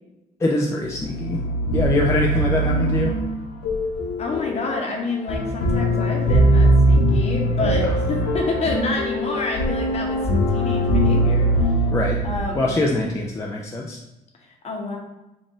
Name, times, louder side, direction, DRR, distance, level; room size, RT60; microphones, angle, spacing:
voice 1, 0.4-1.4 1.7-3.2 7.8-7.9 11.9-12.2 12.5-14.0, left 2 dB, 15° left, -2 dB, 0.4 m, -23 dB
sound 1, 0.9-13.0, right 1 dB, 75° left, 0.7 m, -21 dB
voice 2, 4.2-11.5 12.2-12.8 14.5-15.0, left 3 dB, 40° left, 1 dB, 0.9 m, -28 dB
3.8 x 2.5 x 3.7 m, 0.98 s
cardioid pair, 110°, 17 cm